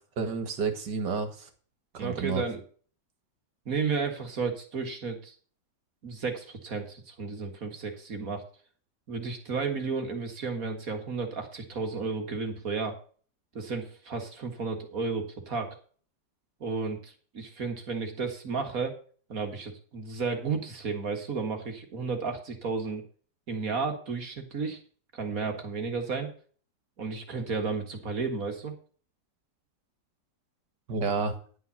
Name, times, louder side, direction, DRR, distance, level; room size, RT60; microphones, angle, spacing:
voice 1, 0.2-1.5 1.9-2.4 30.9-31.3, right 5 dB, 70° right, 8 dB, 2.2 m, -30 dB
voice 2, 2.0-2.6 3.7-5.3 6.0-8.4 9.1-13.0 13.5-15.8 16.6-18.9 19.3-23.0 23.5-24.8 25.1-26.3 27.0-28.7, right 4 dB, 50° right, 5 dB, 2.2 m, -33 dB
11.0 x 5.6 x 7.0 m, 0.43 s
omnidirectional pair, 2.0 m